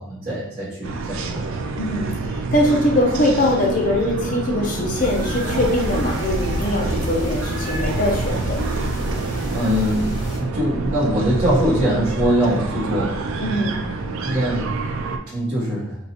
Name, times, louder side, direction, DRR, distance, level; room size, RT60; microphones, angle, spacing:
voice 1, 0.0-1.5 9.5-10.1 10.4-13.2 14.2-14.7 15.3-16.0, equal, 40° right, -11 dB, 0.9 m, -22 dB
sound 1, 0.8-15.2, right 3 dB, 75° right, 0.3 m, -27 dB
voice 2, 1.8-8.6 13.4-13.8, left 1 dB, 40° left, -1 dB, 0.6 m, -22 dB
sound 2, 4.9-10.4, equal, 20° left, 1.4 m, -30 dB
3.8 x 2.4 x 2.8 m, 0.88 s
head